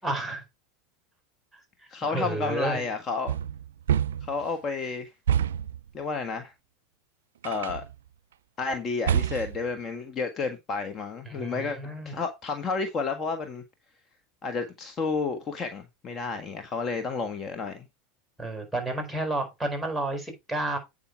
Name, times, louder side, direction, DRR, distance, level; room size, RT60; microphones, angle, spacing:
voice 1, 0.0-0.4 2.1-2.8 11.3-12.1 18.4-20.8, right 2 dB, ahead, 4.6 m, -31 dB
voice 2, 1.9-3.4 4.2-5.1 5.9-6.5 7.4-7.8 8.6-11.8 12.0-13.6 14.4-17.9, left 4 dB, 35° left, 1.5 m, -31 dB
sound 1, 3.3-4.4 5.3-5.8 7.4-7.9 9.1-9.7, right 9 dB, 85° right, 0.4 m, -27 dB
8.9 x 5.7 x 4.6 m
hypercardioid pair, 100°, 0 cm